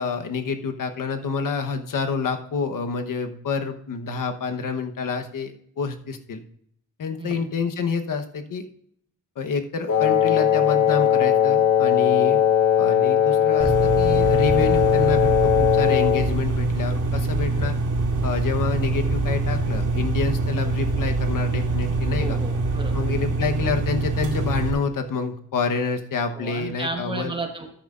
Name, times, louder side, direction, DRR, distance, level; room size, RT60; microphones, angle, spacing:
voice 1, 0.0-6.4 7.0-8.6 9.4-12.4 12.8-17.7 18.2-22.4 22.9-27.3, left 5 dB, 85° left, 6 dB, 1.1 m, -28 dB
Wind instrument woodwind instrument, 9.9-16.3, left 9 dB, 65° left, 1.1 m, -19 dB
sound 1, 13.6-24.7, right 3 dB, 70° right, 2.6 m, -24 dB
voice 2, 22.2-23.0 26.3-27.8, right 2 dB, 15° right, 4 dB, 1.4 m, -33 dB
14.0 x 10.0 x 2.5 m, 0.66 s
wide cardioid pair, 175°, 32 cm